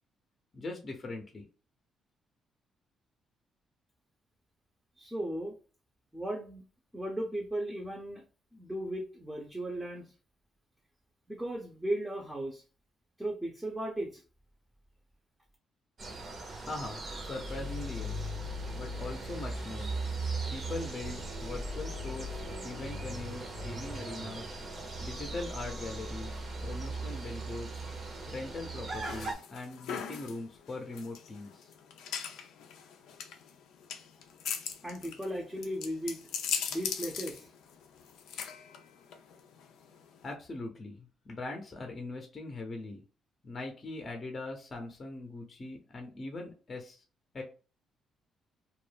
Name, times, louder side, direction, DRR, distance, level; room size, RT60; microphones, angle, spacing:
voice 1, 0.5-1.4 16.6-18.3 18.8-19.9 20.5-24.5 25.0-26.3 26.6-27.8 28.2-31.7 40.2-43.0 43.4-47.0 47.3-47.4, left 2 dB, 35° left, 3 dB, 0.6 m, -41 dB
voice 2, 5.0-5.5 6.1-6.6 6.9-8.2 8.5-10.1 11.3-12.6 13.2-14.2 34.8-36.2 36.7-37.5, right 1 dB, 5° right, -1 dB, 0.6 m, -36 dB
sound 1, 16.0-29.3, right 2 dB, 45° right, 0.7 m, -38 dB
sound 2, 29.0-40.3, left 7 dB, 85° left, 0.4 m, -40 dB
2.3 x 2.0 x 3.2 m, 0.36 s
cardioid pair, 90°, 0 cm